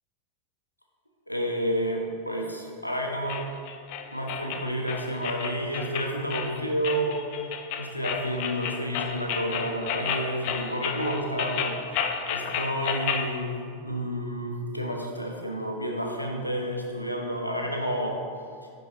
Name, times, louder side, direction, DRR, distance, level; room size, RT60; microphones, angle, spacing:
voice 1, 1.3-3.5 4.1-7.2 7.8-11.8 12.3-18.2, equal, 90° left, 1 dB, 0.7 m, -30 dB
sound 1, 3.3-13.3, left 7 dB, 45° left, 0.4 m, -32 dB
10.0 x 3.9 x 2.6 m, 2.1 s
figure-of-eight pair, 90°, 0 cm